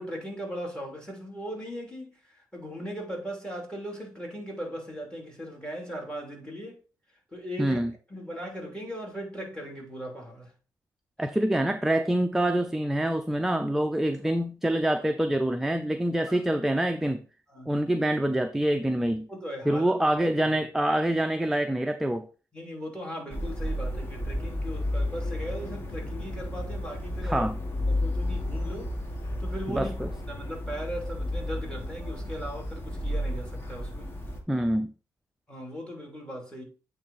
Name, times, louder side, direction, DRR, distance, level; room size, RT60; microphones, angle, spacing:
voice 1, 0.0-10.5 16.3-16.4 17.5-17.8 19.3-19.9 20.2-20.3 20.6-20.7 22.5-27.6 27.9-29.0 29.4-29.9 30.3-34.1 35.5-36.6, equal, 10° left, 2.9 m, -38 dB
voice 2, 7.6-7.9 11.2-17.2 17.7-19.3 19.7-22.3 27.3-27.5 29.7-30.1 34.5-34.9, right 1 dB, 5° right, 0.5 m, -26 dB
sound 1, 23.3-34.4, left 1 dB, 30° left, 1.6 m, -32 dB
8.6 x 3.4 x 4.0 m
cardioid pair, 85°, 8 cm